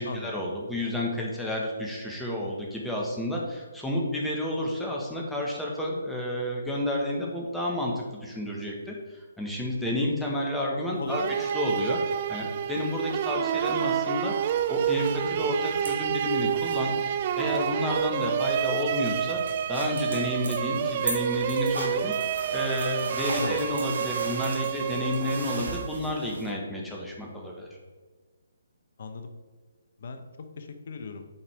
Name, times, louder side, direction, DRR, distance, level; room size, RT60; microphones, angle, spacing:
voice 1, 0.0-11.2 11.5-12.0 12.3-14.3 14.7-16.9 17.4-19.4 19.7-27.7, left 1 dB, 5° left, -3 dB, 1.4 m, -31 dB
voice 2, 11.0-11.3 23.4-23.6 29.0-29.3 30.0-31.3, left 4 dB, 55° left, 7 dB, 0.9 m, -37 dB
sound 1, 11.1-26.2, right 9 dB, 40° right, 0.3 m, -29 dB
sound 2, 14.3-26.5, right 2 dB, 65° right, 1.5 m, -39 dB
8.2 x 5.0 x 3.5 m, 1.4 s
figure-of-eight pair, 140°, 0 cm